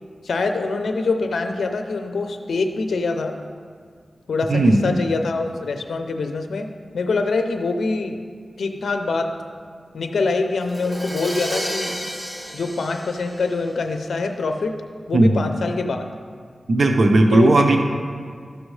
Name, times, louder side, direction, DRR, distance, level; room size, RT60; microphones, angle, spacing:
voice 1, 0.2-3.4 4.3-8.2 8.6-9.3 9.9-11.9 12.5-14.8 15.1-16.0 17.3-17.5, left 3 dB, 85° left, 5 dB, 0.5 m, -24 dB
voice 2, 4.5-5.0 15.1-15.4 16.7-17.8, right 2 dB, 70° right, 4 dB, 0.7 m, -16 dB
Crash cymbal, 10.6-14.4, equal, 20° right, 1.0 m, -32 dB
13.0 x 6.2 x 3.2 m, 2.1 s
cardioid pair, 40°, 0 cm